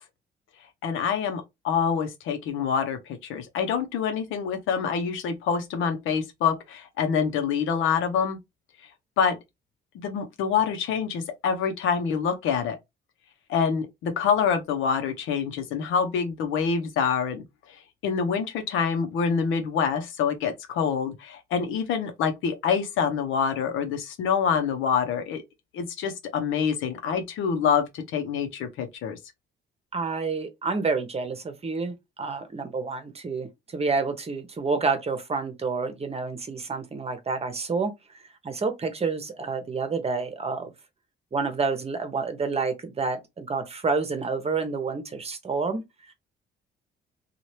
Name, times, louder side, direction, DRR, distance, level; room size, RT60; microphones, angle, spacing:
voice 1, 0.8-8.4 9.2-9.4 9.9-12.8 13.5-17.4 18.0-25.4 25.7-29.2, left 6 dB, 90° left, 0.8 m, -26 dB
voice 2, 29.9-37.9 38.4-40.7 41.3-45.8, right 4 dB, 30° right, 0.9 m, -29 dB
2.8 x 2.4 x 3.1 m
cardioid pair, 90°, 20 cm